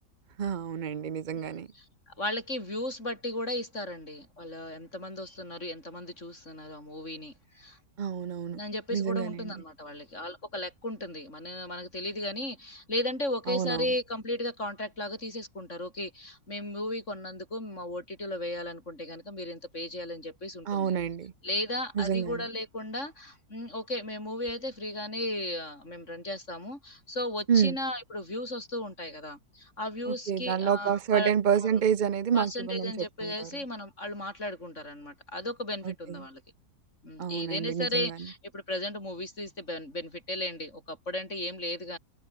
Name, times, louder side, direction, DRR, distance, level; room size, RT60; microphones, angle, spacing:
voice 1, 0.4-1.7 8.0-8.6 8.9-9.6 13.5-13.9 20.7-21.3 22.0-22.4 27.5-27.8 30.1-33.5 35.8-36.2 37.2-38.1, right 8 dB, 75° right, 0.4 m, -28 dB
voice 2, 1.7-7.8 8.5-20.9 21.4-31.3 31.6-31.8 32.3-36.4 37.0-42.0, left 1 dB, 40° left, 7.9 m, -35 dB
omnidirectional pair, 1.9 m